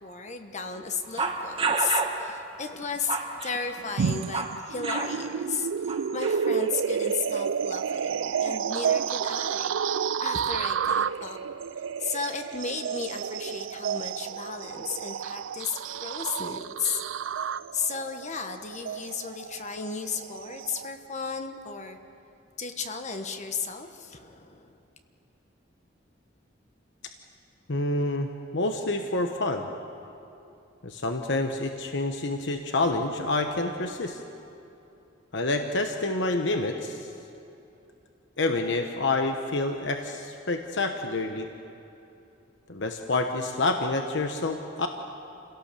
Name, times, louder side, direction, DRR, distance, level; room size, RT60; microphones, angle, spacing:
voice 1, 0.0-11.4 12.0-17.0 17.7-22.0 22.6-24.8, left 5 dB, 40° left, 6 dB, 1.2 m, -34 dB
sound 1, 1.2-2.2 2.8-4.6 4.8-5.1 5.9-6.6, right 4 dB, 30° right, 1.5 m, -29 dB
sound 2, 4.0-20.9, right 7 dB, 80° right, 0.4 m, -30 dB
voice 2, 27.7-29.7 30.8-34.2 35.3-37.1 38.4-41.5 42.7-44.9, left 2 dB, 65° left, 5 dB, 1.1 m, -28 dB
28.5 x 17.5 x 6.9 m, 2.8 s
head